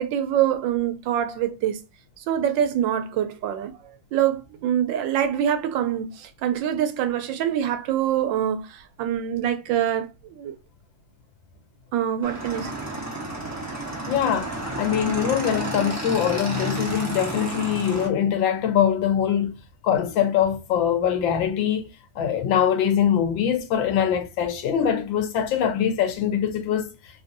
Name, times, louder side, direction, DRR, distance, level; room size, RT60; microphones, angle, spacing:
voice 1, 0.0-1.8 2.2-3.7 4.1-10.6 11.9-12.7, right 10 dB, 85° right, 1.3 m, -25 dB
Motorcycle / Engine, 12.2-18.1, right 2 dB, 25° right, 0.4 m, -31 dB
voice 2, 14.1-19.6 19.8-21.9 22.2-26.9, left 9 dB, 90° left, 1.4 m, -23 dB
3.4 x 2.6 x 2.5 m
omnidirectional pair, 2.0 m